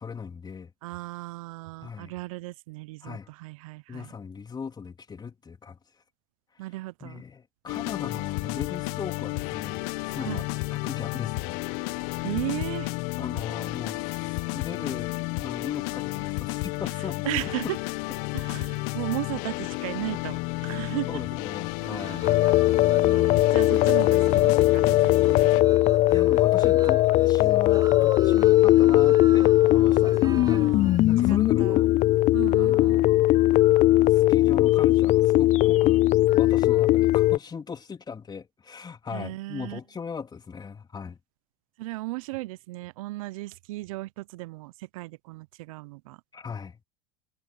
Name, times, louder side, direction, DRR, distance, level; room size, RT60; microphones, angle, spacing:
voice 1, 0.0-0.7 1.8-2.1 3.0-3.3 3.9-5.8 7.0-11.6 13.2-17.2 21.1-22.4 26.1-30.1 30.4-30.7 31.0-31.9 32.6-33.5 33.8-36.0 36.3-41.2 46.3-46.8, left 6 dB, 20° left, 3.4 m, -38 dB
voice 2, 0.8-4.1 6.6-7.2 10.2-10.5 12.2-12.9 17.2-17.8 18.3-21.2 21.9-22.0 23.0-25.5 30.2-31.8 32.3-33.1 39.1-39.8 41.8-46.2, right 20 dB, 70° right, 0.8 m, -36 dB
sound 1, 7.7-25.6, left 25 dB, 60° left, 1.6 m, -32 dB
sound 2, 21.8-31.5, right 5 dB, 20° right, 7.4 m, -44 dB
sound 3, 22.2-37.4, left 16 dB, 40° left, 0.4 m, -19 dB
hypercardioid pair, 95°, 18 cm